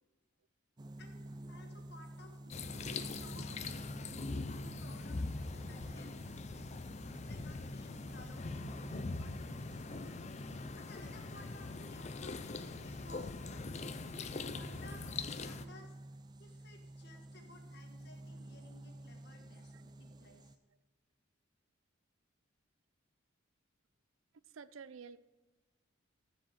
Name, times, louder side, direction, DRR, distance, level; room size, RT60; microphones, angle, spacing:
sound 1, 0.8-20.6, right 1 dB, 20° right, 0.5 m, -51 dB
voice 1, 1.0-3.8 4.4-6.1 7.2-10.2 10.7-13.6 14.2-15.0 15.4-16.0 16.4-20.5, left 2 dB, 50° left, 3 dB, 1.6 m, -58 dB
sound 2, 2.5-15.7, left 3 dB, 35° left, 0.5 m, -42 dB
voice 2, 24.5-25.2, right 6 dB, 75° right, 16 dB, 0.5 m, -50 dB
14.5 x 5.1 x 7.2 m, 1.3 s
head